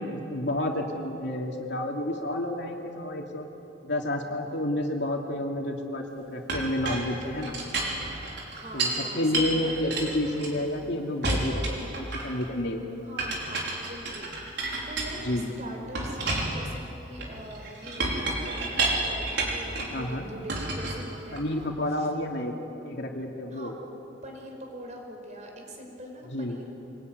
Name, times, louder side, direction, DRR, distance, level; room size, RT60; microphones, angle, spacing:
voice 1, 0.0-3.5 3.8-7.5 8.7-13.1 15.2-15.5 19.9-20.3 21.3-22.6 22.8-23.7 26.3-26.6, left 1 dB, 65° left, 1 dB, 2.9 m, -30 dB
Chink clink, 6.5-9.0 9.3-10.8 11.2-12.5 13.2-15.5 15.9-20.0 20.5-21.6, right 2 dB, 65° right, 5.2 m, -31 dB
voice 2, 8.5-10.0 13.0-22.1 23.5-23.7 24.2-26.8, right 1 dB, 40° right, 2 dB, 5.1 m, -43 dB
26.0 x 20.5 x 9.8 m, 3.0 s
head